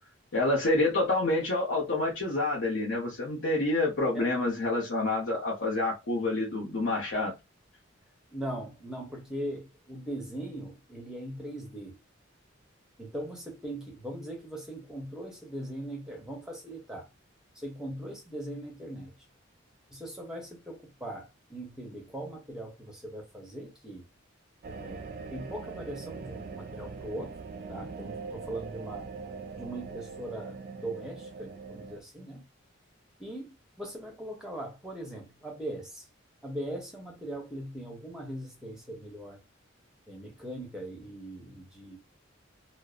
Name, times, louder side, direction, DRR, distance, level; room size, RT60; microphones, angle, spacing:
voice 1, 0.3-7.3, left 2 dB, 65° left, 0.8 m, -28 dB
voice 2, 8.3-12.0 13.0-17.1 17.6-19.1 19.9-24.0 24.7-25.0 25.3-27.3 27.7-29.1 29.6-32.4 33.2-36.0 36.4-39.4 40.1-42.0, right 1 dB, 5° right, 0.7 m, -40 dB
sound 1, 24.6-32.0, right 4 dB, 45° right, 0.3 m, -42 dB
2.6 x 2.0 x 2.3 m
head